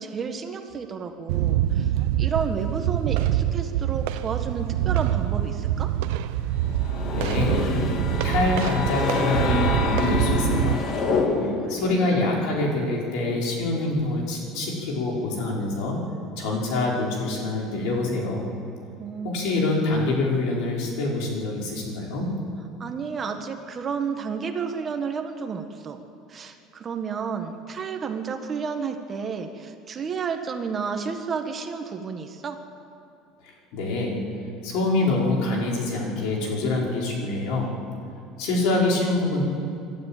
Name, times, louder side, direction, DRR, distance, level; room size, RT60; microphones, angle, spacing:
voice 1, 0.0-1.9 2.2-5.9 11.4-12.1 19.0-19.5 22.8-26.0 26.3-32.6, right 6 dB, 25° right, 6 dB, 1.3 m, -31 dB
sound 1, 1.3-10.7, right 12 dB, 85° right, 0.8 m, -25 dB
sound 2, 6.6-11.8, left 4 dB, 40° left, 2.0 m, -26 dB
voice 2, 7.1-7.7 8.2-10.9 11.7-16.0 16.4-18.5 19.2-22.3 33.4-34.2 34.6-37.8 38.4-39.4, left 2 dB, 70° left, -2 dB, 5.3 m, -25 dB
25.5 x 12.5 x 9.1 m, 2.6 s
cardioid pair, 160°, 0 cm